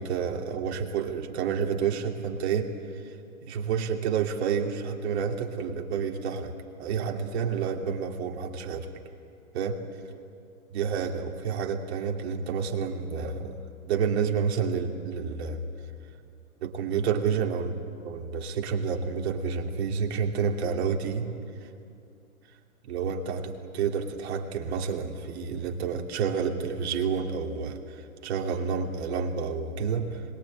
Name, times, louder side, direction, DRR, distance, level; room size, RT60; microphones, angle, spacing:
voice 1, 0.0-3.1 3.4-8.9 9.5-9.8 10.7-13.6 13.9-15.6 16.6-21.3 21.6-21.7 22.9-30.3, right 6 dB, 45° right, 2 dB, 2.8 m, -29 dB
25.5 x 21.5 x 8.8 m, 2.5 s
hypercardioid pair, 140°, 43 cm